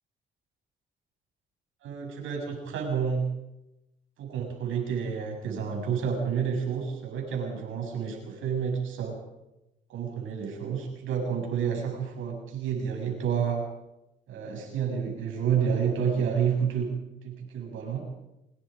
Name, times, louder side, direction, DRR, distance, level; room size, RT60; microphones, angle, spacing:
voice 1, 1.8-3.3 4.2-9.2 9.9-13.6 14.3-16.9 17.2-18.1, right 7 dB, 85° right, 1 dB, 7.4 m, -29 dB
24.5 x 21.5 x 5.3 m, 0.93 s
cardioid pair, 90°, 20 cm